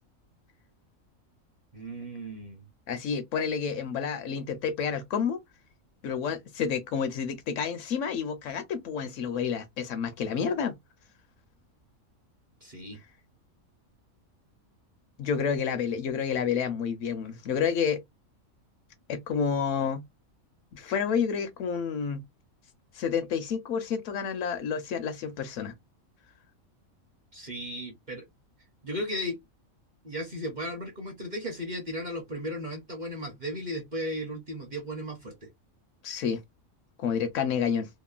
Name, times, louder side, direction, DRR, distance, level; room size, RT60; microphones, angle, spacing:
voice 1, 1.7-2.6 12.6-13.0 15.4-15.5 27.3-28.2 28.8-29.4 30.0-35.5, equal, 40° right, 0.7 m, -35 dB
voice 2, 2.9-5.4 6.0-10.8 15.2-18.0 19.1-20.0 20.7-22.2 22.9-25.7 36.0-36.4 37.0-37.9, left 6 dB, 70° left, 0.9 m, -29 dB
2.9 x 2.1 x 2.3 m
omnidirectional pair, 1.4 m